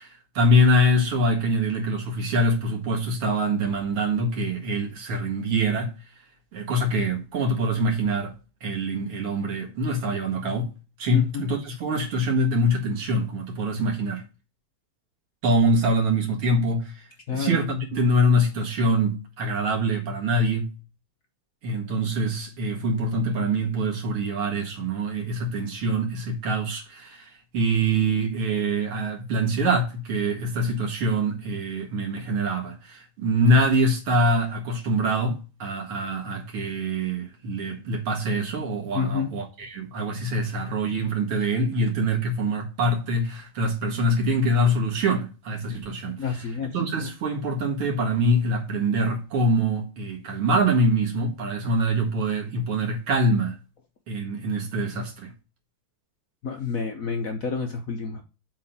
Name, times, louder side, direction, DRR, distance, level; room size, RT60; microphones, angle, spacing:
voice 1, 0.0-6.0 6.5-8.3 8.6-10.7 11.0-14.2 15.4-17.0 17.3-20.7 21.6-46.2 46.7-53.6 54.1-55.3, right 1 dB, 85° right, 2.7 m, -24 dB
voice 2, 11.1-11.5 17.3-17.6 38.9-39.3 46.2-46.7 56.4-58.2, left 6 dB, 55° left, 0.9 m, -28 dB
7.3 x 3.7 x 5.7 m
omnidirectional pair, 2.4 m